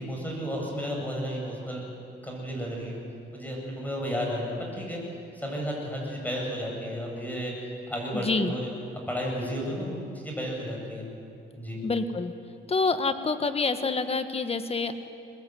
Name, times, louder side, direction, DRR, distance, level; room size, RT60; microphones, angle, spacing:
voice 1, 0.0-1.8 2.2-3.0 3.3-5.0 5.3-7.6 7.9-8.7 9.1-11.1 11.6-11.8, equal, 10° left, -1 dB, 8.0 m, -32 dB
voice 2, 8.1-8.5 11.8-12.3 12.7-14.9, left 4 dB, 30° left, 9 dB, 1.7 m, -27 dB
23.5 x 20.0 x 9.5 m, 2.5 s
cardioid pair, 90°, 20 cm